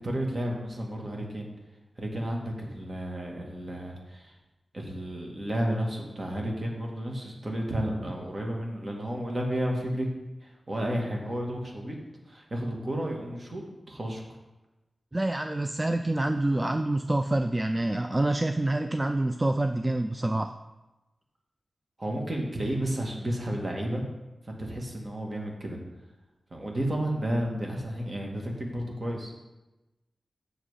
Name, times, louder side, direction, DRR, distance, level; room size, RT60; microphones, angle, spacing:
voice 1, 0.0-1.5 2.0-4.3 4.7-10.1 10.4-12.0 12.3-14.2 22.0-24.0 24.4-25.8 26.5-29.3, right 1 dB, 40° right, 0 dB, 1.7 m, -32 dB
voice 2, 15.1-20.5, right 1 dB, 20° right, 7 dB, 0.3 m, -27 dB
7.7 x 6.2 x 4.9 m, 1.0 s
wide cardioid pair, 100°, 0 cm